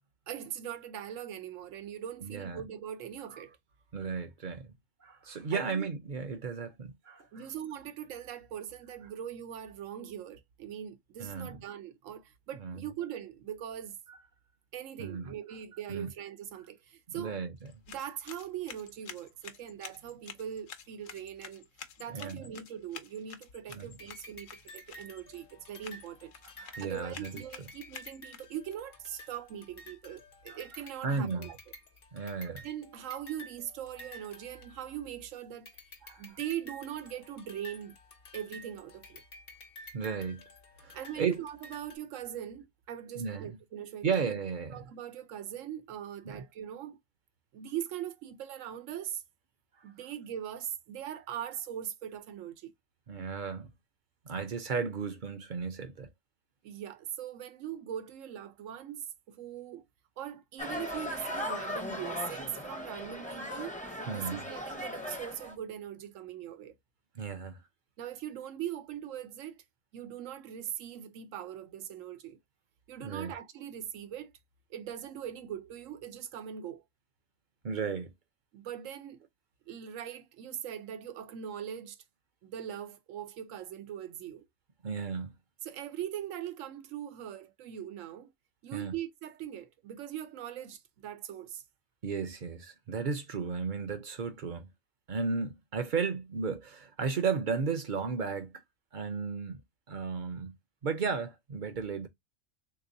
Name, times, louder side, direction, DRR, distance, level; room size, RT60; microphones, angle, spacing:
voice 1, 0.3-3.6 5.5-5.9 7.3-14.0 14.7-17.4 17.9-21.7 22.0-26.3 26.8-31.6 32.5-35.7 36.2-38.0 38.3-39.2 40.9-44.2 44.7-47.0 47.5-49.2 49.8-52.7 56.6-59.8 60.2-63.8 64.1-66.7 68.0-69.6 69.9-72.4 72.9-74.3 74.7-76.8 78.5-79.2 79.7-82.0 82.4-84.4 85.6-88.3 88.6-91.6, right 10 dB, 85° right, 1.0 m, -41 dB
voice 2, 2.2-2.6 3.9-4.7 5.0-7.5 11.2-11.6 12.6-12.8 14.1-14.2 15.0-15.3 15.9-16.1 17.1-17.7 22.1-22.5 23.7-23.9 26.6-27.4 30.5-30.6 31.0-31.5 32.1-32.6 36.0-36.4 39.9-40.4 40.8-41.4 43.1-43.6 44.0-44.9 46.2-46.4 53.1-53.7 54.3-56.1 64.1-64.5 67.1-67.6 73.0-73.3 77.6-78.1 84.8-85.3 88.7-88.9 92.0-94.7 95.1-98.6 98.9-99.6 99.9-100.5 100.8-102.1, right 5 dB, 50° right, 0.6 m, -34 dB
sound 1, 17.6-28.7, left 8 dB, 80° left, 1.0 m, -50 dB
sound 2, 24.0-35.2 35.7-42.0, left 1 dB, 55° left, 1.0 m, -52 dB
sound 3, 60.6-65.5, left 1 dB, 10° left, 0.6 m, -38 dB
3.5 x 2.9 x 2.5 m
omnidirectional pair, 1.3 m